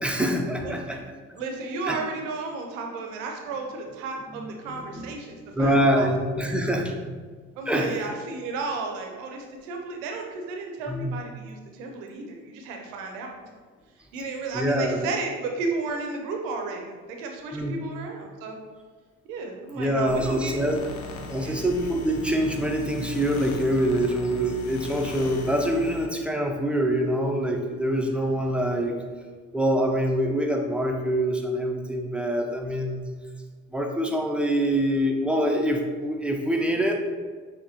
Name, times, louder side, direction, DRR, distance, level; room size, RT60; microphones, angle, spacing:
voice 1, 0.0-1.0 1.9-2.0 4.3-4.5 4.7-5.1 5.6-7.3 7.7-8.0 10.9-11.1 14.5-15.1 17.5-17.8 19.7-20.8 21.3-28.9 29.5-33.1 33.7-36.9, equal, 5° right, 1 dB, 0.5 m, -25 dB
voice 2, 0.6-1.1 1.3-6.1 6.4-6.6 7.5-13.3 14.1-18.6 19.2-20.6 21.4-21.6, right 3 dB, 80° right, 2 dB, 0.6 m, -33 dB
sound 1, 20.1-26.1, left 3 dB, 80° left, 0.5 m, -39 dB
5.7 x 2.1 x 2.8 m, 1.5 s
hypercardioid pair, 55°, 38 cm